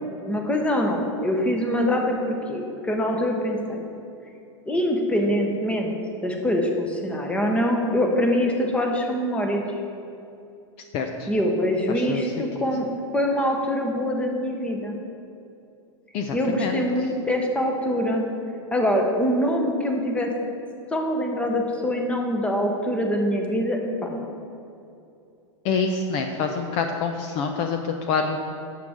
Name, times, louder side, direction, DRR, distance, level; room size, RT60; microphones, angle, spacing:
voice 1, 0.3-3.8 4.7-5.9 6.2-9.6 11.3-12.9 13.1-15.0 16.3-18.3 18.7-20.3 20.9-24.3, equal, 5° left, 2 dB, 1.1 m, -24 dB
voice 2, 10.9-11.3 11.9-12.5 16.1-16.8 25.6-28.4, left 5 dB, 40° left, 5 dB, 0.6 m, -26 dB
12.0 x 7.7 x 3.7 m, 2.7 s
supercardioid pair, 140°, 16 cm